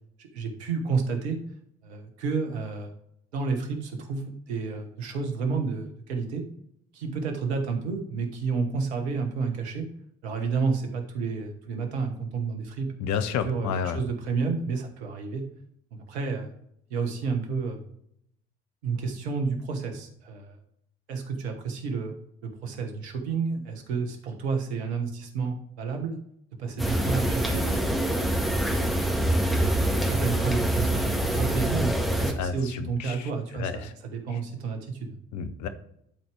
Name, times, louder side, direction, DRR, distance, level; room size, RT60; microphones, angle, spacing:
voice 1, 0.2-1.4 1.8-2.9 3.3-6.4 6.9-9.9 10.2-12.9 13.4-15.4 15.9-16.5 16.9-17.9 18.8-20.6 21.1-26.2 26.6-28.0 30.0-35.1, right 5 dB, 80° right, 4 dB, 1.2 m, -30 dB
voice 2, 13.0-14.0 32.4-33.3 33.6-33.9 35.3-35.7, left 7 dB, 60° left, 10 dB, 0.9 m, -30 dB
sound 1, 26.8-32.3, right 1 dB, ahead, 1.7 m, -25 dB
11.5 x 4.3 x 3.3 m, 0.72 s
figure-of-eight pair, 50°, 32 cm